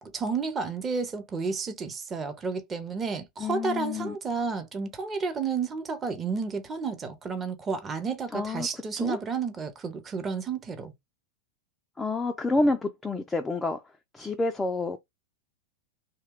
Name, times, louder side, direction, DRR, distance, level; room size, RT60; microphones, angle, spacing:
voice 1, 0.0-10.9, right 5 dB, 20° right, 0.7 m, -31 dB
voice 2, 3.4-4.2 8.3-9.2 12.0-13.8 14.1-15.0, left 2 dB, 10° left, 0.3 m, -28 dB
2.8 x 2.2 x 3.4 m
figure-of-eight pair, 90°, 0 cm